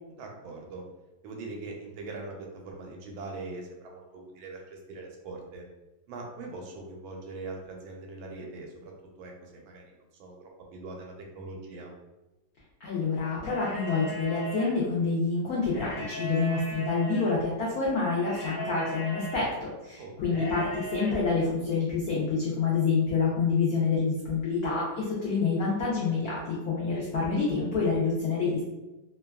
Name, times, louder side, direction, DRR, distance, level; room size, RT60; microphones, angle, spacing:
voice 1, 0.2-0.8 1.2-5.6 6.1-8.9 9.2-11.9 20.0-20.5, right 3 dB, 80° right, 0 dB, 1.3 m, -42 dB
voice 2, 12.8-20.7 20.9-28.7, left 4 dB, 80° left, -6 dB, 0.8 m, -27 dB
sound 1, 13.4-14.7 15.6-17.3 18.2-19.4 20.3-21.2, right 2 dB, 40° left, 1.1 m, -38 dB
3.2 x 2.2 x 2.2 m, 1.0 s
omnidirectional pair, 2.2 m